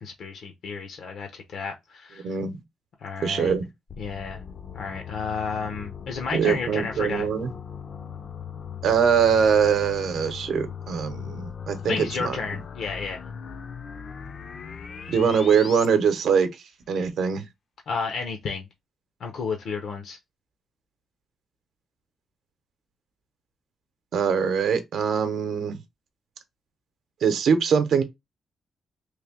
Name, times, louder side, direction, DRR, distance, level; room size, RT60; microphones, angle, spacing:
voice 1, 0.0-2.4 3.0-3.5 4.0-4.4 4.7-7.3 11.8-13.2 17.9-18.6 19.2-20.2, left 5 dB, 70° left, 0.7 m, -32 dB
voice 2, 2.2-2.6 3.2-3.7 6.3-7.5 8.8-12.4 15.1-16.5 16.9-17.4 24.1-25.8 27.2-28.0, right 6 dB, 75° right, 0.7 m, -22 dB
sound 1, 3.9-15.9, left 7 dB, 40° left, 0.4 m, -39 dB
3.2 x 2.6 x 3.5 m
wide cardioid pair, 160°, 0 cm